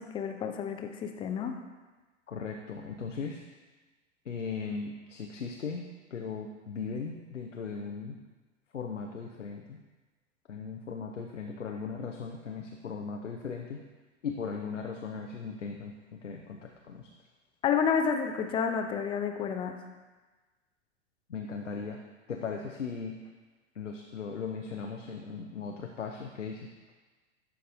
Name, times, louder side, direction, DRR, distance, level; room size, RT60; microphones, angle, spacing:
voice 1, 0.0-1.6 17.6-19.8, left 6 dB, 15° left, 6 dB, 0.4 m, -30 dB
voice 2, 2.3-3.4 4.3-8.2 8.7-9.8 10.5-13.8 14.2-17.1 21.3-22.0 22.3-23.2 23.7-26.7, left 5 dB, 85° left, 2 dB, 0.7 m, -38 dB
11.5 x 5.3 x 2.6 m, 1.3 s
figure-of-eight pair, 95°, 36 cm